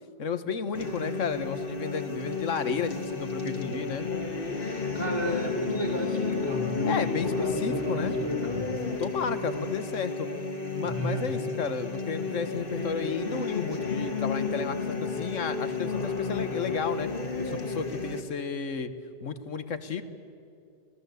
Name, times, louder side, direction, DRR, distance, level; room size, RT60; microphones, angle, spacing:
voice 1, 0.2-4.1 6.8-8.1 9.0-10.3 10.7-17.1 17.4-18.9 19.2-20.0, left 5 dB, 80° left, 11 dB, 1.6 m, -32 dB
sound 1, 0.7-18.2, left 4 dB, 45° left, 2.0 m, -32 dB
voice 2, 4.9-8.7 10.8-11.3, equal, 10° left, 1 dB, 3.2 m, -32 dB
26.0 x 19.0 x 8.1 m, 2.6 s
omnidirectional pair, 1.3 m